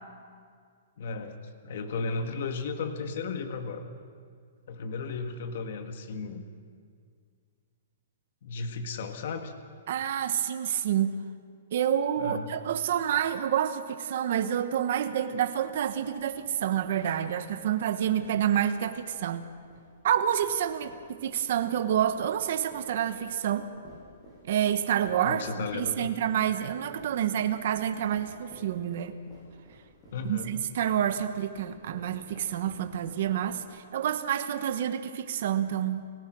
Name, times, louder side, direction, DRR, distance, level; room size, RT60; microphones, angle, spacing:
voice 1, 1.0-3.9 4.7-6.4 8.4-9.5 12.2-12.5 25.2-26.1 30.1-30.5, left 4 dB, 45° left, 7 dB, 1.6 m, -35 dB
voice 2, 9.9-11.1 11.7-19.4 20.0-23.7 24.4-25.4 25.7-29.2 30.2-36.1, right 10 dB, 40° right, 9 dB, 1.2 m, -28 dB
sound 1, 15.6-33.9, equal, 15° left, 7.3 m, -53 dB
30.0 x 16.5 x 6.3 m, 2.1 s
hypercardioid pair, 180°, 0 cm